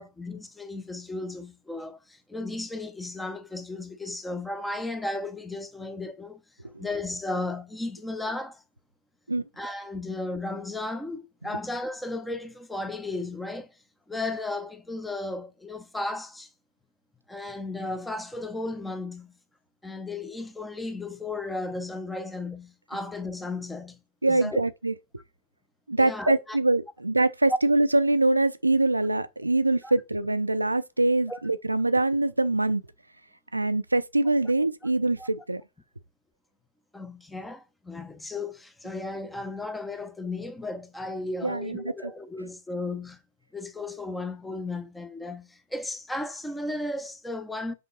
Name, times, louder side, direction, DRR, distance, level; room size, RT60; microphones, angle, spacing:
voice 1, 0.0-8.6 9.6-13.8 14.1-16.5 17.3-19.3 19.8-24.0 24.3-24.6 26.0-26.6 29.8-29.9 31.3-31.4 35.2-35.3 36.9-43.2 43.5-47.7, left 2 dB, 5° left, 0.7 m, -35 dB
voice 2, 24.2-24.9 25.9-32.8 33.5-35.6 41.4-42.1, right 2 dB, 90° right, 0.4 m, -24 dB
5.5 x 5.0 x 4.0 m
figure-of-eight pair, 105°, 0 cm